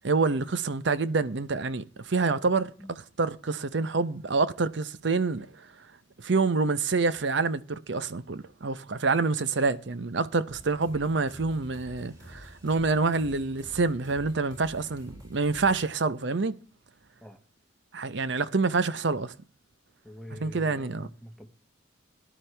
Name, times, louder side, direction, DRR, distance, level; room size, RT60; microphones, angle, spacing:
voice 1, 0.0-5.7 6.2-16.6 17.9-19.3 20.3-21.1, right 4 dB, 65° right, 0.7 m, -27 dB
sound 1, 10.5-15.9, equal, 20° right, 6.3 m, -48 dB
voice 2, 20.0-21.5, equal, ahead, 1.1 m, -44 dB
17.5 x 11.0 x 3.3 m
head